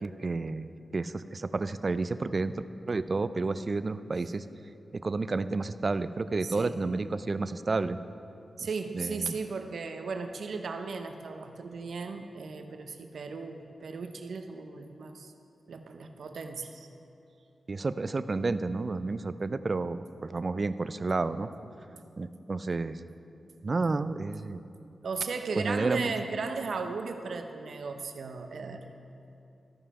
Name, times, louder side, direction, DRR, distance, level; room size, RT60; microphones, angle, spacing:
voice 1, 0.0-2.5 2.9-4.4 4.9-8.0 8.9-9.4 17.7-21.5 22.2-23.0 23.6-24.6 25.6-26.1, right 3 dB, 40° right, 13 dB, 0.3 m, -31 dB
voice 2, 6.4-6.8 8.6-15.3 15.7-16.9 25.0-28.9, right 4 dB, 75° right, 6 dB, 0.6 m, -36 dB
13.0 x 5.6 x 4.8 m, 2.7 s
cardioid pair, 80°, 0 cm